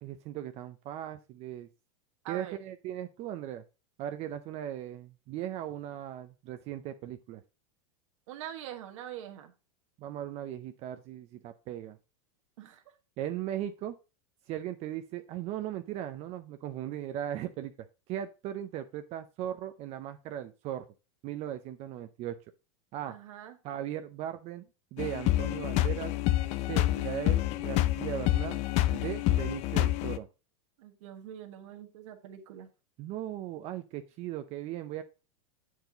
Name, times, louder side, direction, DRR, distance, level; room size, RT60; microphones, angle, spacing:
voice 1, 0.0-1.7 2.3-3.6 4.0-7.4 10.0-12.0 13.2-14.0 14.5-17.7 18.1-20.9 21.2-22.4 22.9-23.2 23.6-24.7 24.9-26.1 26.7-28.6 28.9-30.3 33.0-35.0, right 11 dB, 40° right, 9 dB, 0.6 m, -38 dB
voice 2, 2.2-2.6 8.3-9.5 12.6-12.8 23.1-23.6 30.8-32.7, right 11 dB, 70° right, 4 dB, 1.4 m, -44 dB
sound 1, 25.0-30.2, left 15 dB, 40° left, 0.5 m, -28 dB
7.7 x 4.6 x 3.9 m, 0.31 s
supercardioid pair, 130°, 17 cm